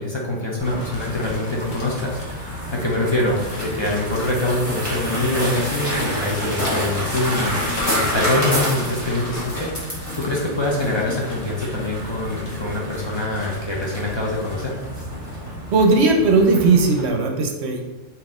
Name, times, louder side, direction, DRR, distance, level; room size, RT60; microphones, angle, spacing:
voice 1, 0.0-14.8, left 1 dB, 30° left, -3 dB, 0.5 m, -24 dB
sound 1, 0.6-5.4 6.0-7.1 7.5-8.3 8.9-10.1 10.7-12.0 12.4-14.4, left 1 dB, 50° left, 1.1 m, -41 dB
sound 2, 0.6-17.1, equal, 15° left, 1.3 m, -29 dB
voice 2, 15.7-17.8, right 3 dB, 65° right, 3 dB, 0.9 m, -17 dB
4.0 x 2.9 x 3.6 m, 1.3 s
omnidirectional pair, 1.3 m